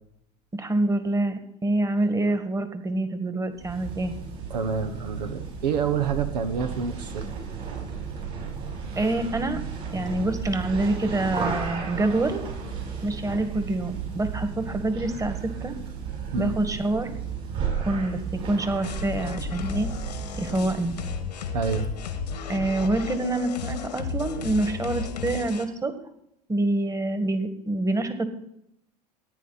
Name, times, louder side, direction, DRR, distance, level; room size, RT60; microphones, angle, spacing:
voice 1, 0.5-4.1 9.0-9.6 9.9-12.4 13.0-15.8 16.4-17.2 17.8-18.2 18.5-19.9 20.4-21.0 22.5-25.9 26.5-28.3, right 2 dB, 15° right, 9 dB, 1.8 m, -26 dB
sound 1, 3.5-21.3, right 6 dB, 55° right, 5.8 m, -34 dB
voice 2, 4.5-7.4 16.3-16.5 21.5-21.9, right 6 dB, 80° right, 9 dB, 1.2 m, -28 dB
sound 2, 18.8-25.7, left 6 dB, 85° left, 1.6 m, -33 dB
15.5 x 9.5 x 4.1 m, 0.74 s
hypercardioid pair, 80°, 21 cm